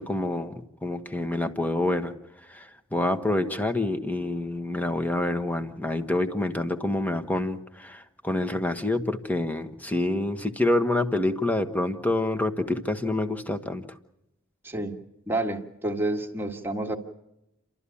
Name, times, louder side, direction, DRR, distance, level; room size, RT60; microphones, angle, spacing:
voice 1, 0.0-2.1 2.5-13.8, left 1 dB, 10° left, 7 dB, 1.2 m, -27 dB
voice 2, 15.3-17.0, right 2 dB, 10° right, 2 dB, 1.8 m, -29 dB
29.5 x 13.0 x 8.5 m, 0.89 s
head